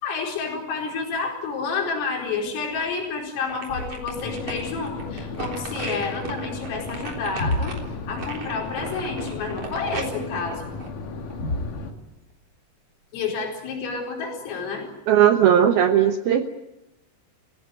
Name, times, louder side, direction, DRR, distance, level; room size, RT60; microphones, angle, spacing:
voice 1, 0.0-7.8 8.1-10.6 13.1-14.9, left 4 dB, 75° left, 1 dB, 7.2 m, -29 dB
sound 1, 2.2-3.1 3.5-11.5 12.0-12.1, right 4 dB, 40° right, 4.3 m, -37 dB
sound 2, 3.7-11.9, left 1 dB, 20° left, 3.5 m, -35 dB
sound 3, 4.1-11.9, left 4 dB, 50° left, 3.1 m, -35 dB
voice 2, 15.1-16.5, right 9 dB, 80° right, 7 dB, 2.2 m, -17 dB
29.5 x 17.0 x 9.3 m, 0.95 s
omnidirectional pair, 5.9 m